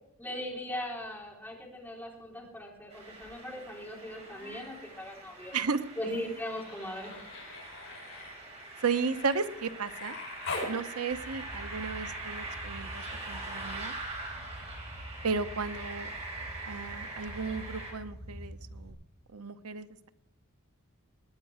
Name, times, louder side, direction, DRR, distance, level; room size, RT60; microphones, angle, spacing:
voice 1, 0.2-5.5 6.0-7.2, left 1 dB, 10° left, -3 dB, 3.5 m, -39 dB
sound 1, 2.9-17.9, right 2 dB, 30° right, 3.9 m, -43 dB
Human voice, 4.1-4.8 5.1-10.8 12.3-12.4, left 3 dB, 60° left, 6.5 m, -43 dB
voice 2, 5.5-6.3 8.8-10.2 10.7-13.9 15.2-16.1 16.6-19.0 19.3-20.1, right 5 dB, 85° right, 11 dB, 0.8 m, -34 dB
sound 2, 11.1-18.9, equal, 45° right, 4.2 m, -46 dB
19.0 x 10.0 x 4.9 m, 0.82 s
head